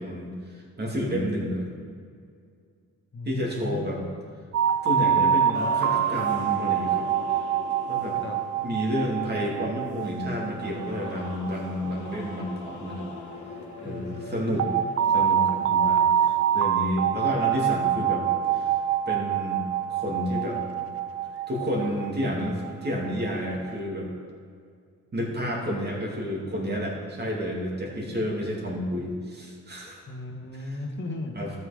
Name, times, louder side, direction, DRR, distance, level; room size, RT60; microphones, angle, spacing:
voice 1, 0.0-1.7 3.2-4.0 4.8-7.5 7.9-8.2 8.6-13.1 13.8-14.7 15.1-18.2 18.5-18.7 19.1-19.6 19.9-20.6 21.5-24.1 25.1-30.0 30.5-30.8 31.4-31.5, equal, 35° right, -2 dB, 2.6 m, -30 dB
voice 2, 3.1-4.1 8.1-8.4 13.8-14.8 30.1-31.5, left 2 dB, 40° left, 3 dB, 1.5 m, -37 dB
sound 1, 4.5-13.3 14.6-23.7, right 9 dB, 50° right, 0.5 m, -26 dB
sound 2, 5.5-18.6, left 4 dB, 70° left, 1.5 m, -42 dB
13.0 x 6.0 x 5.1 m, 2.2 s
cardioid pair, 90°, 30 cm